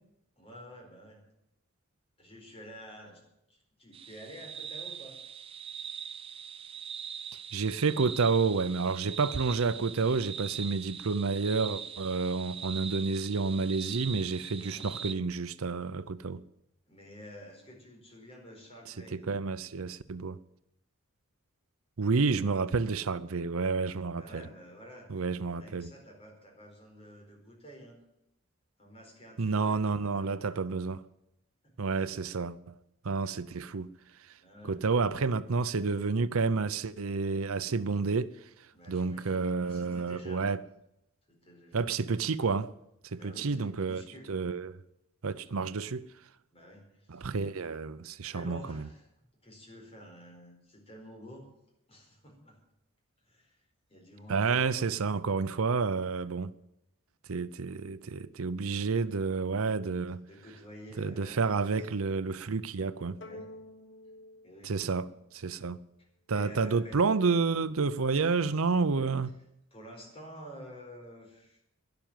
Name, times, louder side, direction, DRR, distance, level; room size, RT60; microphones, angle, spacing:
voice 1, 0.4-1.2 2.2-3.2 3.5-5.2 14.6-14.9 16.9-19.2 22.1-22.7 24.1-25.1 25.5-28.0 28.8-30.6 31.6-31.9 34.4-34.8 38.7-40.6 41.3-41.9 43.2-44.3 45.3-45.7 46.5-47.5 48.3-49.1 49.4-51.5 51.9-52.6 53.2-53.6 53.9-54.9 60.2-61.9 63.2-63.6 64.4-64.8 66.0-67.0 69.7-71.6, equal, 25° left, 4.5 m, -50 dB
sound 1, 3.9-15.1, right 8 dB, 25° right, 0.4 m, -41 dB
voice 2, 7.5-16.4 19.1-20.4 22.0-24.4 25.1-25.9 29.4-31.0 31.8-32.7 33.0-33.9 34.7-38.3 38.9-40.6 41.7-42.7 43.0-44.0 44.3-44.8 45.2-46.0 47.1-48.9 54.3-56.5 57.3-60.2 61.0-63.2 64.6-65.1 65.3-65.8 66.3-69.4, right 4 dB, 75° right, 0.6 m, -30 dB
sound 2, 63.2-65.8, left 1 dB, 55° left, 1.4 m, -50 dB
12.0 x 11.5 x 9.2 m
head